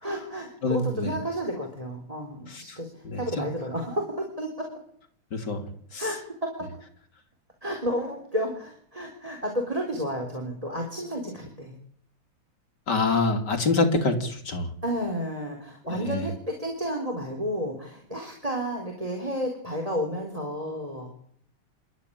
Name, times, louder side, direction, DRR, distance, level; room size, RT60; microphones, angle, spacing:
voice 1, 0.0-4.7 6.0-6.7 7.6-11.7 14.8-21.1, equal, 15° right, 2 dB, 3.9 m, -31 dB
voice 2, 0.6-1.1 2.5-2.8 3.0-3.5 5.3-5.6 5.9-6.1 12.9-14.7 15.9-16.3, left 3 dB, 50° left, 6 dB, 3.3 m, -26 dB
27.0 x 12.5 x 10.0 m, 0.62 s
omnidirectional pair, 2.4 m